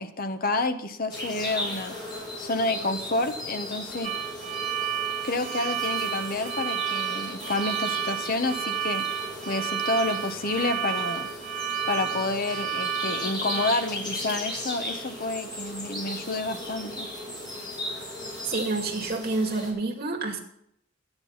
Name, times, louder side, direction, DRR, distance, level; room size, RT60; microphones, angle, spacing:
voice 1, 0.0-2.0 2.4-4.1 5.2-11.3 11.9-17.1, left 2 dB, 50° left, 8 dB, 1.0 m, -29 dB
sound 1, 1.1-19.7, left 1 dB, 25° left, 6.4 m, -36 dB
sound 2, 4.0-13.7, right 9 dB, 35° right, 1.5 m, -31 dB
voice 2, 18.4-20.4, right 3 dB, 50° right, 2 dB, 2.2 m, -28 dB
14.0 x 9.9 x 5.8 m, 0.75 s
head